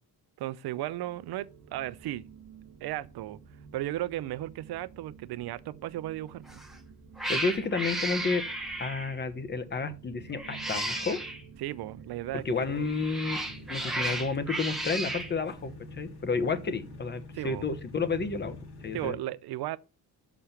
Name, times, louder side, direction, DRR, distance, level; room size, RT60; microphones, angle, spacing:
voice 1, 0.4-2.2 2.8-3.4 3.7-6.6 11.6-12.9 17.3-17.7 18.9-19.8, right 14 dB, 80° right, 0.7 m, -35 dB
sound 1, 0.8-17.0, right 6 dB, 50° right, 1.1 m, -52 dB
Cat, 6.5-6.7 7.2-9.2 10.3-11.4 12.7-15.3, right 1 dB, ahead, 1.1 m, -34 dB
voice 2, 7.3-8.4 8.8-11.2 12.4-13.4 13.7-18.6 18.8-19.2, left 4 dB, 30° left, 1.0 m, -31 dB
sound 2, 12.3-19.1, left 2 dB, 80° left, 2.9 m, -47 dB
6.7 x 6.1 x 5.8 m
cardioid pair, 150°, 38 cm